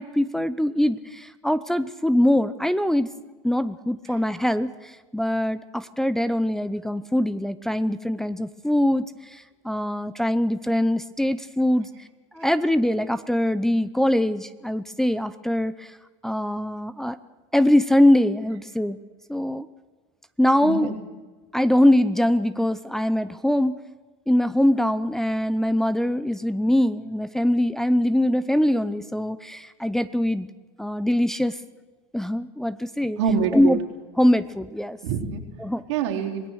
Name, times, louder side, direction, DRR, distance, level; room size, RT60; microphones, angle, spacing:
voice 1, 0.0-3.1 3.4-11.9 12.3-16.0 16.2-17.2 17.5-19.0 19.3-19.7 20.4-20.9 21.5-23.8 24.3-30.5 30.8-31.6 32.1-33.2 33.5-33.8 34.2-35.0 35.6-35.8, left 1 dB, 5° left, 10 dB, 0.7 m, -22 dB
voice 2, 20.6-21.0 33.2-33.8 35.0-35.4 35.9-36.5, right 7 dB, 75° right, 0 dB, 3.8 m, -25 dB
26.0 x 18.0 x 6.5 m, 1.3 s
supercardioid pair, 110°, 15 cm